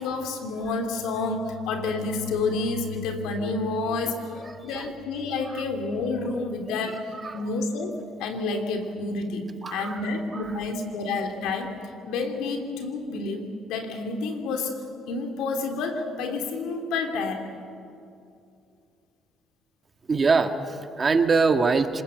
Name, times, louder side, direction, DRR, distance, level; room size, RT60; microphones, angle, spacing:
voice 1, 0.0-7.1 7.3-11.8 12.0-14.8 15.1-17.5, left 3 dB, 80° left, 4 dB, 3.0 m, -29 dB
voice 2, 4.4-4.9 5.4-5.6 6.8-7.4 9.6-10.6 20.1-22.0, right 4 dB, 35° right, 7 dB, 1.8 m, -25 dB
26.5 x 20.5 x 7.9 m, 2.5 s
supercardioid pair, 70°, 0 cm